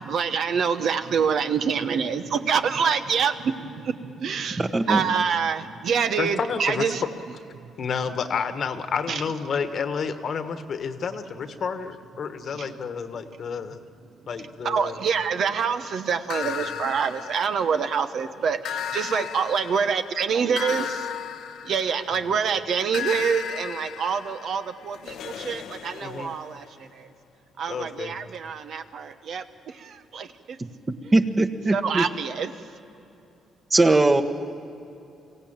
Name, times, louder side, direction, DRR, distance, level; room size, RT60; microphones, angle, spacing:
voice 1, 0.0-7.0 9.1-9.2 12.5-12.7 14.6-21.0 21.6-27.1 27.6-30.6 31.7-32.6, right 6 dB, 65° right, 9 dB, 1.1 m, -26 dB
voice 2, 4.6-5.1 31.1-32.0 33.7-34.2, right 2 dB, 25° right, 8 dB, 1.3 m, -20 dB
voice 3, 6.2-6.9 7.8-13.8 14.3-14.9 16.4-16.5 26.0-26.4 27.7-28.3, left 6 dB, 55° left, 9 dB, 1.4 m, -30 dB
sound 1, 16.3-18.0 18.6-22.3 22.9-26.7, left 8 dB, 80° left, 1.0 m, -35 dB
24.0 x 16.0 x 8.9 m, 2.7 s
cardioid pair, 90°, 0 cm